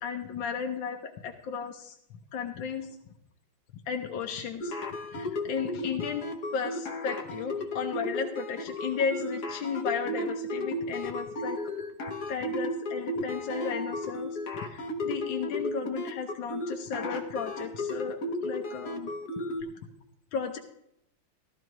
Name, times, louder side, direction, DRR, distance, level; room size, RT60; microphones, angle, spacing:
voice 1, 0.0-2.0 2.3-3.0 3.9-6.2 6.5-11.6 12.3-18.2 18.4-19.1 19.6-19.7 20.3-20.6, left 6 dB, 75° left, 3 dB, 1.6 m, -34 dB
sound 1, 4.6-19.6, left 1 dB, 55° left, 1.7 m, -34 dB
17.0 x 12.0 x 3.1 m, 0.78 s
omnidirectional pair, 2.1 m